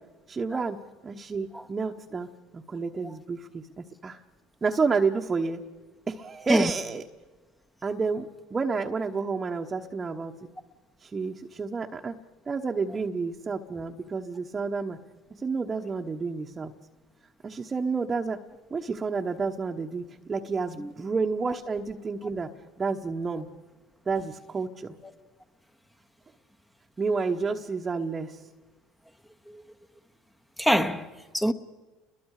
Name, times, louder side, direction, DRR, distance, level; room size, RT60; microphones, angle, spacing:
voice 1, 0.3-2.3 2.5-4.2 4.6-5.6 6.1-7.0 7.8-10.3 11.0-12.2 12.5-15.0 15.4-16.7 17.4-18.4 18.7-22.5 22.8-23.5 24.1-25.0 27.0-28.4, right 4 dB, 25° right, 1.2 m, -30 dB
voice 2, 30.6-31.5, equal, 5° left, 1.2 m, -25 dB
29.5 x 22.0 x 5.0 m
supercardioid pair, 95°, 0 cm